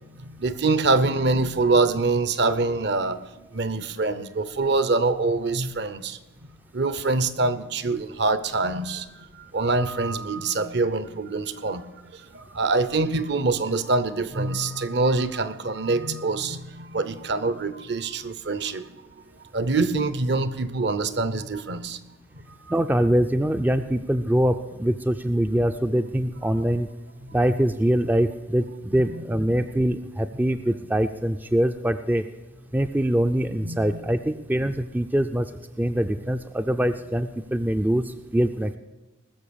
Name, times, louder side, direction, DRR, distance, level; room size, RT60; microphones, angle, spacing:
voice 1, 0.2-6.2 6.7-18.9 19.5-22.0 22.3-22.8 27.2-27.4 29.1-29.2 33.6-34.0, right 3 dB, 55° right, 14 dB, 0.8 m, -25 dB
voice 2, 22.7-26.9 27.3-32.2 32.7-35.5 35.8-38.8, right 1 dB, 10° right, 9 dB, 0.3 m, -23 dB
20.0 x 6.8 x 7.0 m, 1.1 s
head